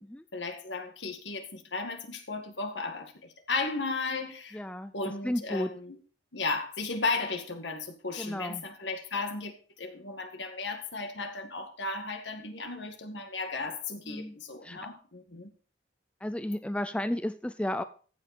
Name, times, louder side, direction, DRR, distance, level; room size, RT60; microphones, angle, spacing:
voice 1, 0.3-4.6 4.9-6.0 6.3-15.5, left 3 dB, 75° left, 5 dB, 1.9 m, -35 dB
voice 2, 4.5-4.9 5.2-5.7 8.2-8.7 14.1-14.4 14.6-14.8 16.2-17.8, left 1 dB, 5° left, 11 dB, 0.4 m, -33 dB
14.5 x 7.7 x 4.3 m, 0.40 s
head